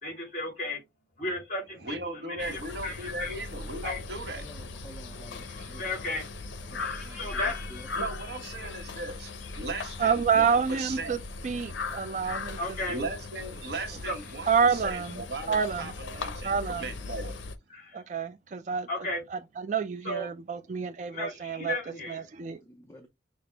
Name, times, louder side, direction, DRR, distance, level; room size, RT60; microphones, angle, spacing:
voice 1, 0.0-0.8 1.2-3.3 3.8-4.0 5.3-6.3 6.8-8.1 8.6-8.9 12.6-13.0 14.0-14.2 17.7-18.0 18.9-19.2 20.0-20.3 21.1-22.2, left 2 dB, 45° left, 2.2 m, -35 dB
voice 2, 1.8-4.5 7.0-7.3 7.9-11.2 12.2-12.4 12.9-17.4, right 2 dB, 60° right, 0.9 m, -38 dB
sound 1, 2.4-17.6, left 3 dB, 90° left, 0.6 m, -39 dB
voice 3, 4.4-5.9 6.7-7.9 22.6-23.1, equal, 15° left, 0.5 m, -50 dB
voice 4, 10.0-11.2 11.4-12.6 14.5-15.2 15.5-15.8 16.4-16.8 17.9-18.9 19.3-21.7 22.1-22.6, right 6 dB, 40° right, 0.3 m, -28 dB
5.9 x 2.1 x 3.3 m
head